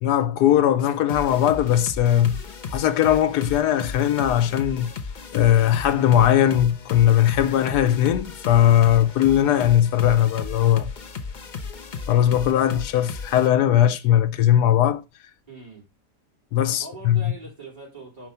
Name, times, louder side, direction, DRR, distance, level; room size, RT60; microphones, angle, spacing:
voice 1, 0.0-2.4 2.7-4.9 5.3-10.9 12.1-15.0 16.5-17.2, left 11 dB, 80° left, 1.2 m, -19 dB
sound 1, 1.1-13.5, left 5 dB, 45° left, 0.6 m, -35 dB
voice 2, 15.5-15.9 16.8-18.3, right 3 dB, 20° right, 4.0 m, -41 dB
5.1 x 4.6 x 5.5 m
omnidirectional pair, 1.7 m